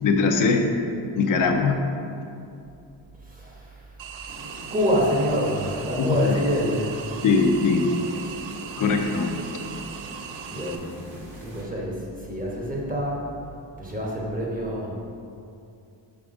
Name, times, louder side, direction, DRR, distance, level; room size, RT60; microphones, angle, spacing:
voice 1, 0.0-0.7 1.2-1.8 6.0-6.4 7.2-7.9 8.8-9.4, left 4 dB, 45° left, 3 dB, 0.6 m, -21 dB
voice 2, 3.2-4.0 4.7-7.2 10.5-11.0 11.4-13.3 13.8-14.9, equal, 20° right, -4 dB, 1.1 m, -27 dB
sound 1, 4.0-10.8, right 7 dB, 90° right, 0.5 m, -39 dB
sound 2, 4.3-11.6, right 1 dB, 55° right, 1.4 m, -43 dB
6.0 x 3.6 x 5.0 m, 2.6 s
wide cardioid pair, 140°, 44 cm